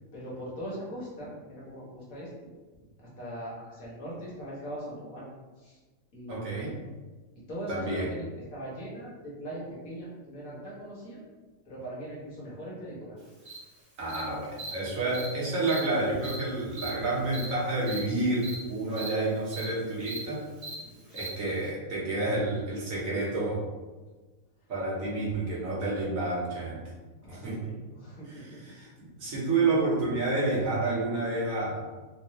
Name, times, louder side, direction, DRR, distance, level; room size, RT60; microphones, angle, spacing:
voice 1, 0.1-2.3 3.2-5.3 5.6-5.8 6.1-6.7 7.5-8.2 8.5-11.2 11.7-13.2 20.8-21.2 27.2-28.6, equal, 85° left, -6 dB, 1.7 m, -40 dB
voice 2, 6.3-6.7 7.7-8.1 14.0-20.4 21.1-23.6 24.7-26.8 27.3-27.6 28.3-31.8, right 2 dB, 75° right, -5 dB, 1.5 m, -29 dB
Cricket, 13.5-13.6 14.1-14.2 14.6-14.7 15.1-15.3 15.6-15.8 16.2-16.4 16.7-16.9 17.3-17.4 17.8-18.0 18.4-18.5 18.9-19.1 19.5-19.6 20.0-20.2 20.6-20.7 21.1-21.3, right 3 dB, 45° right, 1.5 m, -38 dB
4.0 x 2.6 x 3.1 m, 1.3 s
omnidirectional pair, 1.4 m